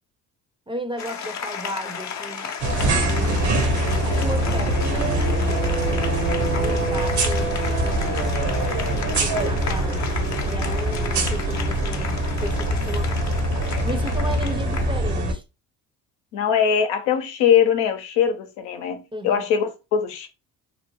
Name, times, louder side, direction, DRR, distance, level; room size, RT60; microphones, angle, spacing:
voice 1, 0.7-2.5 3.1-3.6 4.0-8.2 9.1-10.1 10.4-13.2 13.8-15.4 19.1-19.5, right 1 dB, 10° right, 0.6 m, -34 dB
Applause, 1.0-15.0, left 6 dB, 40° left, 0.6 m, -34 dB
sound 1, 2.6-15.3, right 1 dB, 65° right, 1.0 m, -23 dB
voice 2, 16.3-19.0 19.2-20.3, left 8 dB, 75° left, 0.8 m, -21 dB
2.9 x 2.0 x 3.0 m
hypercardioid pair, 55°, 45 cm